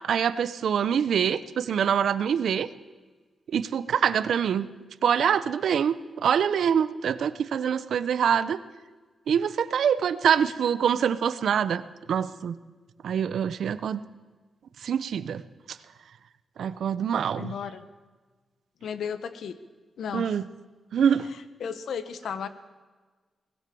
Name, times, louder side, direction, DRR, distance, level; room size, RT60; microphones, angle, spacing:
voice 1, 0.0-2.7 3.5-4.7 5.0-8.6 9.3-11.8 12.1-12.6 13.0-14.0 14.8-15.4 15.7-15.8 16.6-17.5 20.1-20.5 20.9-21.3, right 8 dB, 85° right, 14 dB, 1.0 m, -25 dB
voice 2, 17.3-17.8 18.8-19.5 20.0-20.4 21.6-22.5, left 7 dB, 85° left, 11 dB, 1.4 m, -34 dB
24.0 x 19.5 x 7.1 m, 1.3 s
cardioid pair, 90°, 0 cm